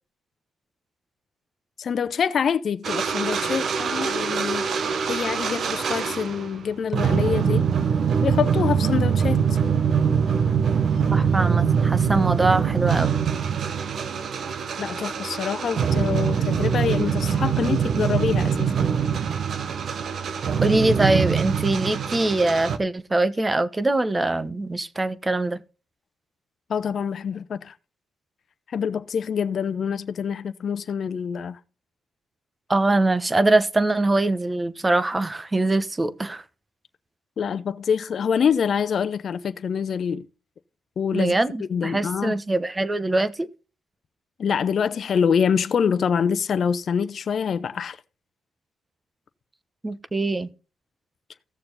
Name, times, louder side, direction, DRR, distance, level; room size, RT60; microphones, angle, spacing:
voice 1, 1.8-4.7 5.1-7.7 8.2-9.6 14.8-18.7 26.7-27.7 28.7-31.6 37.4-40.3 41.0-41.3 41.6-42.3 44.4-48.0, left 7 dB, 50° left, 0.7 m, -25 dB
sound 1, 2.8-6.6 6.9-22.8, right 7 dB, 55° right, 1.0 m, -23 dB
voice 2, 11.1-13.1 20.6-25.6 32.7-36.4 41.1-43.5 49.8-50.5, right 2 dB, 20° right, 1.0 m, -23 dB
16.0 x 6.8 x 4.0 m
cardioid pair, 90°, 0 cm